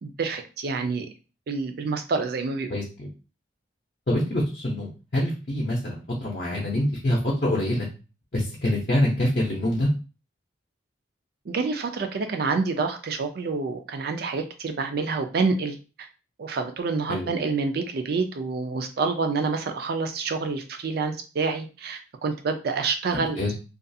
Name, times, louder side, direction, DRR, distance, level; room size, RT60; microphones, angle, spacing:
voice 1, 0.0-1.1 1.5-2.7 11.5-15.8 16.4-23.5, right 4 dB, 55° right, 6 dB, 0.4 m, -27 dB
voice 2, 2.7-3.1 4.1-7.9 8.3-9.9 17.1-17.3 23.1-23.5, left 1 dB, 45° left, -2 dB, 0.6 m, -25 dB
2.4 x 2.3 x 2.6 m, 0.33 s
head